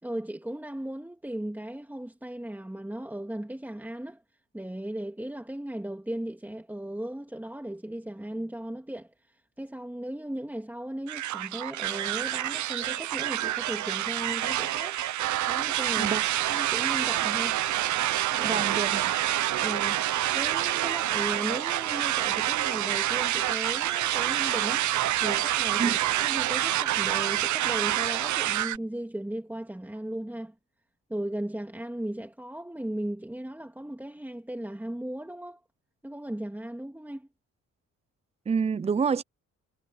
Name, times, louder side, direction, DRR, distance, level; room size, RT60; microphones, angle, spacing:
voice 1, 0.0-4.2 4.5-15.0 15.5-16.1 16.5-17.6 18.3-18.7 19.6-20.0 20.3-24.9 25.2-30.5 31.1-35.6 36.0-37.3, right 1 dB, 5° right, 2.7 m, -36 dB
sound 1, 11.1-28.8, right 13 dB, 70° right, 0.9 m, -27 dB
voice 2, 18.4-19.0 25.8-26.0 38.5-39.2, right 6 dB, 20° right, 0.6 m, -27 dB
cardioid pair, 90°, 30 cm